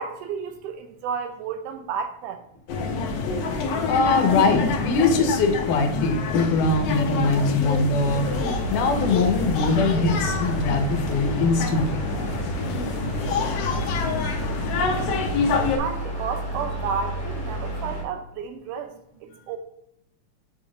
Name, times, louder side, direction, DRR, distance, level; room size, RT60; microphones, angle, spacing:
voice 1, 0.0-2.4 15.8-19.6, right 6 dB, 85° right, 6 dB, 2.2 m, -32 dB
sound 1, 2.7-15.8, left 4 dB, 65° left, 1.7 m, -27 dB
voice 2, 3.9-8.3 8.7-12.0 13.8-14.3 15.5-15.6, left 3 dB, 85° left, 5 dB, 2.5 m, -22 dB
sound 2, 8.0-18.0, right 1 dB, 25° left, 1.9 m, -31 dB
7.1 x 6.2 x 2.5 m, 0.78 s
omnidirectional pair, 3.6 m